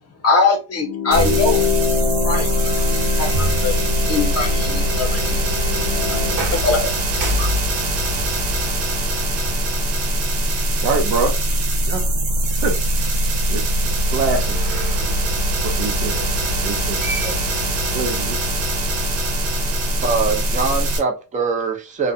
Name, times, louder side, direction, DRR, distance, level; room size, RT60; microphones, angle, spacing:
voice 1, 0.2-1.7 2.2-2.7 3.2-3.7 4.1-5.4 6.1-6.2 6.5-7.5, left 3 dB, 35° left, 4 dB, 0.8 m, -22 dB
sound 1, 0.7-6.5, left 9 dB, 75° left, 0.6 m, -26 dB
sound 2, 1.1-21.0, right 1 dB, 90° right, 1.0 m, -21 dB
sound 3, 1.2-2.3 3.3-4.5 6.3-9.9 10.7-10.8 14.0-15.3 16.7-16.8 17.0-18.3, equal, 50° right, 1.0 m, -30 dB
voice 2, 10.8-11.4 11.9-12.0 12.6-12.8 13.5-13.7 14.1-14.6 15.6-17.0 17.2-17.4 17.9-18.4, right 4 dB, 70° right, 3 dB, 0.6 m, -24 dB
voice 3, 20.0-22.1, right 4 dB, 20° right, 2 dB, 0.5 m, -22 dB
2.4 x 2.1 x 2.6 m, 0.31 s
cardioid pair, 105°, 44 cm